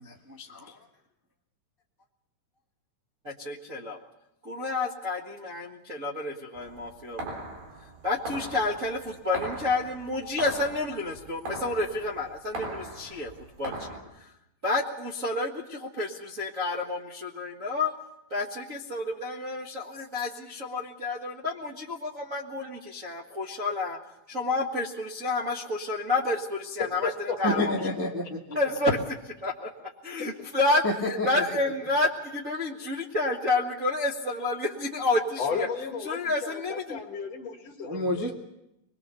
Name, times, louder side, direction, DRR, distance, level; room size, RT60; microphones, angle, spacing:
voice 1, 3.2-4.0 4.4-7.3 8.0-13.3 13.6-13.9 14.6-17.9 18.3-24.0 24.3-27.1 27.4-27.7 28.5-29.1 29.4-35.7 36.1-37.0, left 2 dB, 35° right, -5 dB, 1.3 m, -30 dB
sound 1, 6.6-14.0, right 2 dB, 80° right, 5.7 m, -39 dB
voice 2, 26.8-27.4 30.2-30.5 31.7-31.8 35.4-38.2, left 5 dB, 55° left, 4 dB, 2.4 m, -34 dB
voice 3, 27.4-28.6 30.8-31.4 37.8-38.3, left 1 dB, 10° right, -1 dB, 0.9 m, -29 dB
23.5 x 21.5 x 6.9 m, 0.85 s
omnidirectional pair, 4.1 m